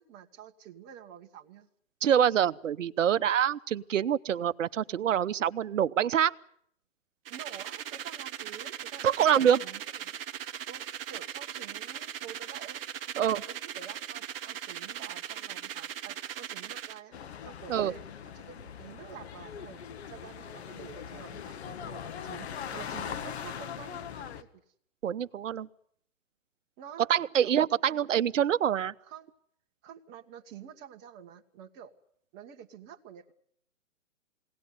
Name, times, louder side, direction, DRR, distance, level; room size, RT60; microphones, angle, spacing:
voice 1, 0.0-1.7 7.3-10.1 10.7-12.8 13.1-17.2 17.4-19.8 20.1-24.6 26.8-27.1 27.4-27.6 27.9-28.0 29.0-29.3 29.8-31.9 32.3-33.3, right 9 dB, 25° right, 3 dB, 1.5 m, -48 dB
voice 2, 2.0-6.3 9.0-9.6 13.2-13.4 17.7-17.9 25.0-25.7 27.1-28.9, right 9 dB, 70° right, 16 dB, 0.9 m, -25 dB
sound 1, 7.2-17.0, right 10 dB, 45° right, 1.2 m, -39 dB
sound 2, 17.1-24.4, left 8 dB, 55° left, 1.7 m, -41 dB
23.0 x 18.0 x 9.4 m, 0.69 s
hypercardioid pair, 140°, 39 cm